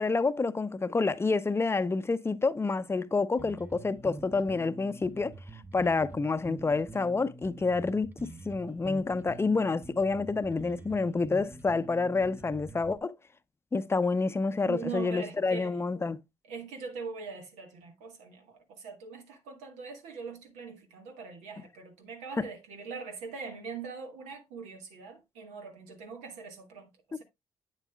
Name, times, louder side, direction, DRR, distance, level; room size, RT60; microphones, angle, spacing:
voice 1, 0.0-5.3 5.7-13.2 13.7-16.2, left 3 dB, 20° left, 0.6 m, -28 dB
Bass guitar, 3.4-13.0, right 2 dB, 15° right, 0.7 m, -46 dB
voice 2, 14.6-15.8 16.4-27.2, right 5 dB, 90° right, 1.3 m, -42 dB
8.2 x 7.2 x 2.3 m
supercardioid pair, 70°, 12 cm